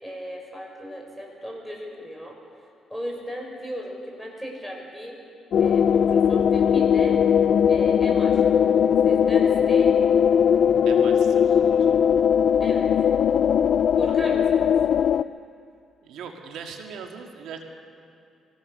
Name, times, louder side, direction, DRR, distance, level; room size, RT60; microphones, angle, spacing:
voice 1, 0.0-2.4 2.9-5.2 5.6-7.2 7.7-8.4 9.0-10.1 12.6-12.9 13.9-14.8, equal, ahead, -1 dB, 5.7 m, -36 dB
sound 1, 5.5-15.2, left 8 dB, 60° left, 0.4 m, -19 dB
voice 2, 10.9-12.0 14.1-14.4 16.0-17.6, right 6 dB, 85° right, 2 dB, 2.0 m, -40 dB
23.5 x 17.0 x 6.7 m, 2.6 s
cardioid pair, 90°, 0 cm